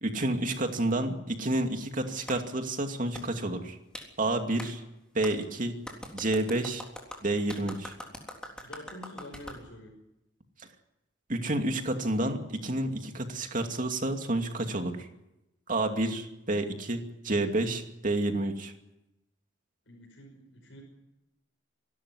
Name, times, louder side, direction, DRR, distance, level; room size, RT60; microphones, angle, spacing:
voice 1, 0.0-3.8 4.2-4.8 5.1-5.7 6.1-6.8 7.2-7.9 11.3-15.1 15.7-18.7, right 2 dB, 45° right, 5 dB, 2.5 m, -29 dB
Clapping, 2.3-2.4 3.1-3.3 3.9-4.1 4.6-4.7 5.2-5.3 5.8-9.6, equal, 5° left, 3.5 m, -42 dB
voice 2, 8.5-9.9 19.9-20.8, left 1 dB, 80° left, 1 dB, 5.7 m, -47 dB
26.0 x 12.5 x 9.8 m, 0.92 s
head